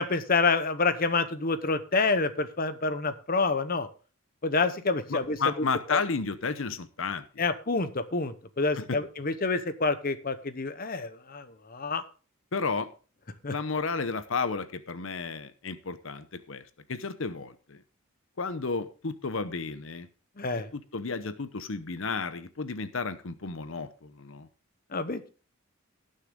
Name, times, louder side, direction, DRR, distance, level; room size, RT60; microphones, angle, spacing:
voice 1, 0.0-3.9 4.4-5.4 5.9-6.0 7.4-12.0 13.4-13.5 20.4-20.7 24.9-25.3, left 3 dB, 40° left, 12 dB, 0.9 m, -28 dB
voice 2, 5.1-7.5 8.8-9.0 12.5-12.9 13.5-16.6 16.9-17.8 18.4-20.1 20.7-24.5, left 4 dB, 60° left, 12 dB, 0.8 m, -32 dB
18.0 x 6.6 x 3.7 m, 0.36 s
head